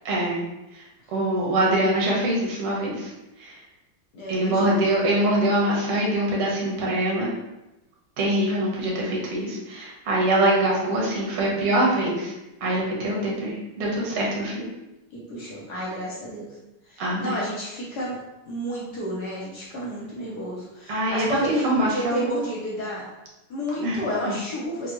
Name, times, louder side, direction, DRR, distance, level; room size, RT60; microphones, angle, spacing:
voice 1, 0.1-0.4 1.1-3.1 3.4-3.6 4.3-7.3 8.2-12.3 12.6-14.7 17.0-17.4 20.9-22.2 23.8-24.3, right 1 dB, 90° right, -3 dB, 2.0 m, -24 dB
voice 2, 4.1-4.9 11.0-11.9 15.1-16.5 16.9-18.2 18.4-23.0 23.5-24.9, equal, 60° left, -5 dB, 1.2 m, -31 dB
6.1 x 2.3 x 2.9 m, 0.98 s
omnidirectional pair, 2.4 m